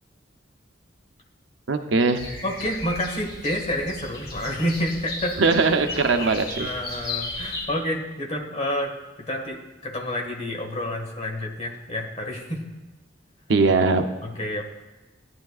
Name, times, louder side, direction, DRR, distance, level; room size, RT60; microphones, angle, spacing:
voice 1, 1.7-2.2 5.4-6.7 13.5-14.0, right 3 dB, 75° right, 7 dB, 0.7 m, -20 dB
sound 1, 2.1-7.7, left 2 dB, 60° left, 2.2 m, -35 dB
voice 2, 2.4-5.4 6.6-8.9 9.2-12.6 14.2-14.6, left 1 dB, 35° left, 1 dB, 1.6 m, -29 dB
16.5 x 10.5 x 2.4 m, 1.1 s
head